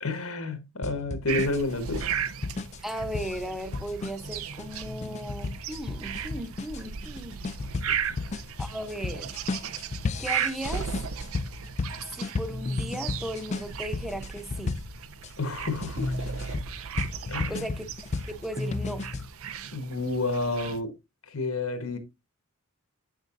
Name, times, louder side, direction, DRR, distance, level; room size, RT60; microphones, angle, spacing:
voice 1, 0.0-2.0 7.4-7.5 7.9-8.2 15.4-16.5 17.3-17.7 19.7-20.9 21.3-22.0, left 2 dB, 75° left, 1.5 m, -30 dB
sound 1, 0.8-15.3 15.8-19.3, left 3 dB, 30° left, 0.3 m, -34 dB
sound 2, 1.3-20.8, right 7 dB, 80° right, 0.7 m, -36 dB
voice 2, 2.8-7.4 8.6-9.4 10.2-10.9 12.0-14.8 17.5-17.9 18.3-19.1, right 1 dB, ahead, 0.8 m, -36 dB
7.9 x 6.6 x 2.6 m
head